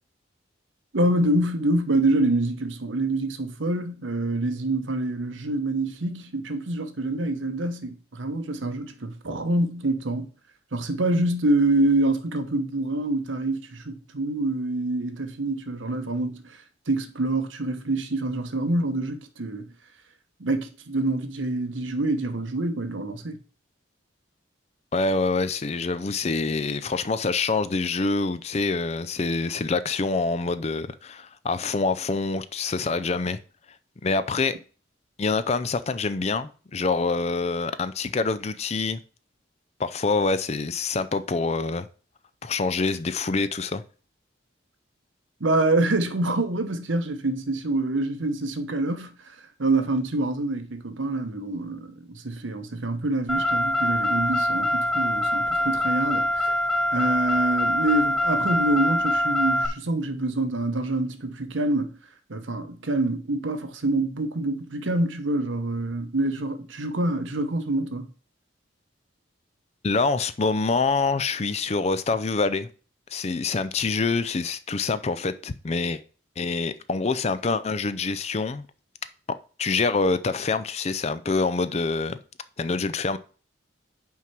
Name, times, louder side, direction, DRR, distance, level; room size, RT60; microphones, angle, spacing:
voice 1, 0.9-10.3 10.7-19.7 20.4-23.4 45.4-56.6 56.9-62.0 62.3-68.1, right 2 dB, 75° right, 1.0 m, -26 dB
voice 2, 24.9-33.4 34.0-34.6 35.2-39.0 39.8-41.9 42.4-43.8 69.8-72.7 73.1-76.0 76.4-78.6 79.6-82.2 82.6-83.2, left 4 dB, 35° left, 0.5 m, -26 dB
Car, 53.3-59.7, equal, 5° left, 0.7 m, -24 dB
5.8 x 4.6 x 6.0 m
head